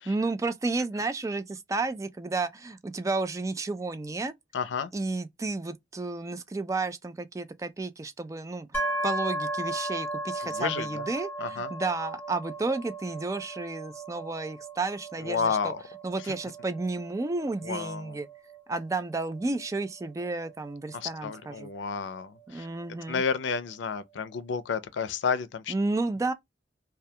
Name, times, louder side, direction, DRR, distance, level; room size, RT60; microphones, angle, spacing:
voice 1, 0.1-4.3 4.9-15.6 16.0-18.3 18.7-21.7 22.5-23.2 25.7-26.3, right 3 dB, 20° right, 0.3 m, -32 dB
voice 2, 4.5-4.9 10.4-11.1 11.4-11.7 15.2-15.8 16.2-16.4 17.6-18.2 20.9-22.7 23.1-25.7, left 6 dB, 90° left, 0.4 m, -31 dB
sound 1, 8.7-22.4, right 1 dB, 10° left, 0.8 m, -36 dB
2.2 x 2.2 x 2.6 m
head